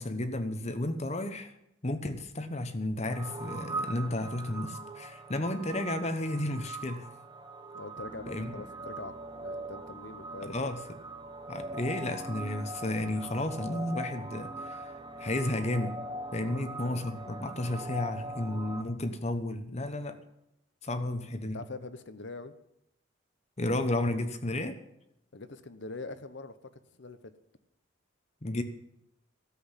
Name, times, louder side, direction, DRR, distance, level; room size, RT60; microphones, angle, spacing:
voice 1, 0.0-1.5 1.8-7.1 8.3-8.5 10.4-10.8 11.5-14.9 15.2-16.0 16.3-20.2 20.8-21.6 23.6-24.8 28.4-28.6, left 1 dB, 30° left, 9 dB, 1.1 m, -32 dB
sound 1, 3.0-18.8, right 2 dB, 20° right, 0.9 m, -41 dB
voice 2, 7.7-10.7 16.3-17.2 21.5-22.5 25.3-26.6 27.0-27.3, left 3 dB, 60° left, 11 dB, 0.9 m, -43 dB
13.5 x 7.8 x 9.9 m, 0.80 s
head